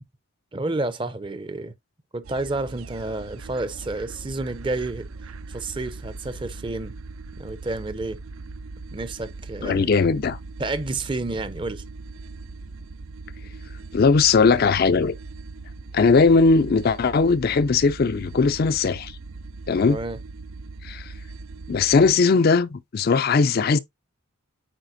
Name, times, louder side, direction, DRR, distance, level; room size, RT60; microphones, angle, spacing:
voice 1, 0.5-1.7 2.1-5.1 5.5-7.0 7.4-8.2 8.9-9.9 10.6-11.8 19.9-20.2, right 2 dB, 20° right, 0.5 m, -30 dB
sound 1, 2.2-22.1, right 3 dB, 70° right, 0.5 m, -40 dB
voice 2, 9.6-10.4 13.9-15.2 15.9-19.1 19.7-20.0 20.8-21.1 21.7-23.8, left 4 dB, 45° left, 0.4 m, -19 dB
9.0 x 4.3 x 2.6 m
head